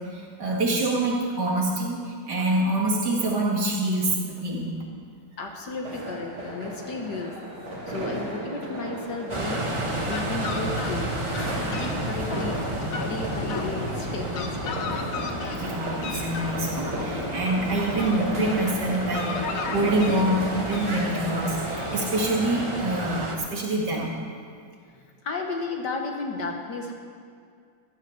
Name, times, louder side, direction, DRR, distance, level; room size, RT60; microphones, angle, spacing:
voice 1, 0.0-4.8 15.5-24.1, right 1 dB, 55° right, -1 dB, 2.4 m, -26 dB
voice 2, 5.4-7.4 7.9-9.7 9.9-11.1 11.6-12.6 13.0-14.8 24.9-26.9, left 3 dB, 60° left, 2 dB, 1.7 m, -34 dB
sound 1, 5.8-22.1, right 1 dB, 75° right, 3.9 m, -36 dB
sound 2, 9.3-23.4, right 2 dB, 20° right, 0.8 m, -32 dB
Fowl, 9.4-22.4, left 5 dB, 85° left, 1.9 m, -36 dB
12.5 x 10.5 x 6.6 m, 2.3 s
omnidirectional pair, 2.2 m